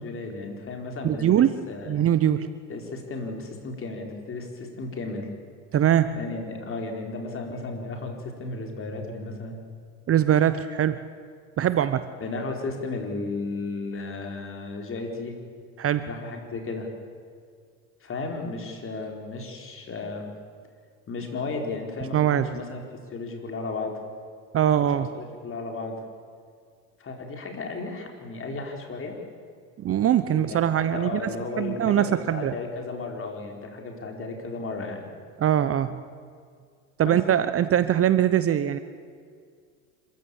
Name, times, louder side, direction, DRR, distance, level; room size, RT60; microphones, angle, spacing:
voice 1, 0.0-1.9 2.7-5.3 6.1-9.6 11.6-11.8 12.2-15.3 16.0-16.9 18.0-20.3 21.1-22.8 23.1-24.0 25.0-26.0 27.0-29.1 30.3-30.6 30.9-35.1 37.0-37.2, left 3 dB, 30° left, 2 dB, 4.6 m, -34 dB
voice 2, 1.0-1.5 1.9-2.5 5.7-6.2 10.1-11.0 11.6-12.1 15.8-16.0 22.1-22.5 24.5-25.1 29.8-32.5 35.4-36.0 37.0-38.8, right 10 dB, 35° right, 13 dB, 0.9 m, -22 dB
26.0 x 15.0 x 8.7 m, 2.1 s
supercardioid pair, 95°, 41 cm